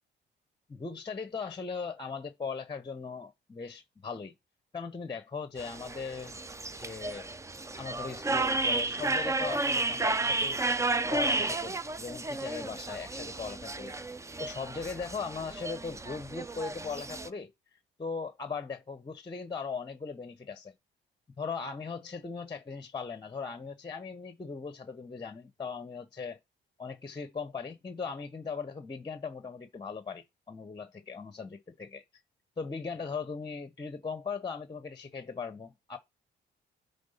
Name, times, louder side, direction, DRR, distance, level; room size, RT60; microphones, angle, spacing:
voice 1, 0.7-4.3 4.7-6.4 6.8-7.3 7.8-10.6 11.1-14.0 14.4-20.7 21.4-26.4 26.8-32.2 32.6-36.0, left 5 dB, 20° left, 0.9 m, -39 dB
sound 1, 5.6-17.3, right 2 dB, 15° right, 0.5 m, -32 dB
9.6 x 3.6 x 5.6 m
cardioid pair, 90°, 20 cm